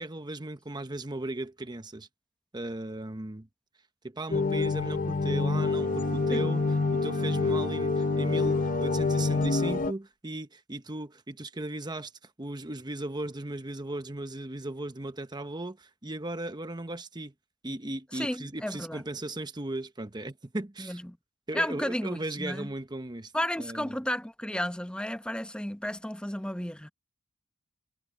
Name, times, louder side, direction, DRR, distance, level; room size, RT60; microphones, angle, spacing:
voice 1, 0.0-2.1 2.5-3.5 4.0-17.3 17.6-21.0 21.5-23.3 23.6-24.0, right 2 dB, 20° right, 1.0 m, -37 dB
sound 1, 4.3-9.9, left 4 dB, 40° left, 0.7 m, -27 dB
sound 2, 5.4-9.9, right 3 dB, 55° right, 0.6 m, -39 dB
voice 2, 18.1-19.0 20.8-21.2 21.5-22.7 23.3-26.9, left 1 dB, 5° left, 0.9 m, -33 dB
head